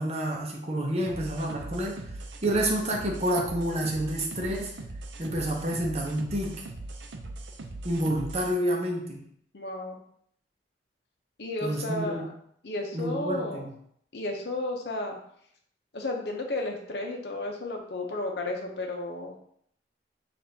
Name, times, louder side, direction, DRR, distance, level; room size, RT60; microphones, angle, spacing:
voice 1, 0.0-2.0 2.4-4.7 5.2-6.6 7.8-9.2 11.6-12.3 12.9-13.7, right 1 dB, 35° right, 0 dB, 0.7 m, -29 dB
sound 1, 1.0-8.5, right 2 dB, 90° right, 0.5 m, -40 dB
voice 2, 9.5-10.0 11.4-12.3 12.6-13.7 14.1-15.2 15.9-19.4, left 2 dB, 65° left, 2 dB, 0.7 m, -33 dB
6.1 x 2.5 x 2.7 m, 0.67 s
head